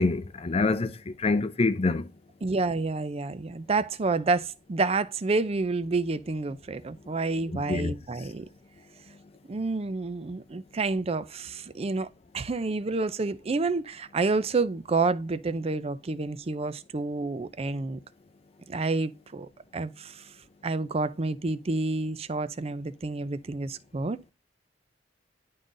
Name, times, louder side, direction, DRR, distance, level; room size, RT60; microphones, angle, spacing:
voice 1, 0.0-2.1 7.5-7.9, left 3 dB, 35° left, 0.5 m, -26 dB
voice 2, 2.4-8.4 9.5-12.1 12.3-18.0 18.7-20.3 20.6-24.2, right 3 dB, 35° right, 0.5 m, -29 dB
11.0 x 3.8 x 2.5 m
head